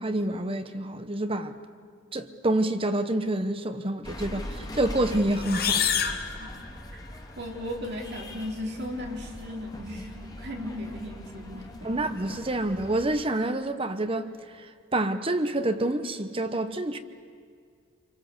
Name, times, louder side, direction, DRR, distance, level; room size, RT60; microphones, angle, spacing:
voice 1, 0.0-1.6 2.1-5.9 11.8-17.0, right 1 dB, 25° right, 0.9 m, -28 dB
sound 1, 4.0-13.1, left 1 dB, 20° left, 1.9 m, -41 dB
sound 2, 5.4-7.2, left 7 dB, 50° left, 1.5 m, -28 dB
voice 2, 7.4-11.9, left 1 dB, 55° right, 3.8 m, -36 dB
27.5 x 24.5 x 8.0 m
head